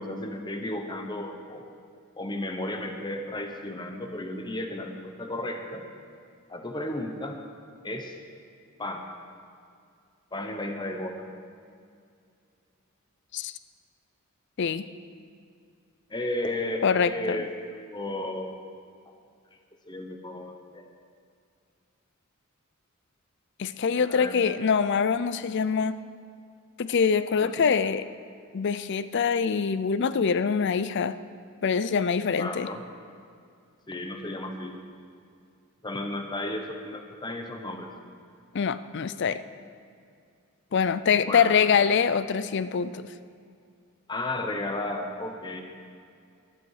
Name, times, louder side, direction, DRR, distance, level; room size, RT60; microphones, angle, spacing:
voice 1, 0.0-1.7 2.2-5.9 6.5-7.4 7.8-8.1 8.8-9.0 10.3-11.2 16.1-18.5 19.9-20.9 24.1-24.4 27.4-27.5 32.4-32.8 33.9-34.8 35.8-37.9 41.3-41.6 44.1-45.6, left 1 dB, 20° left, 4 dB, 1.0 m, -33 dB
voice 2, 16.8-17.4 23.6-26.0 26.8-28.0 28.5-31.2 31.6-32.7 38.5-39.4 40.7-43.0, left 6 dB, 55° left, 14 dB, 0.4 m, -24 dB
13.0 x 11.5 x 4.8 m, 2.3 s
head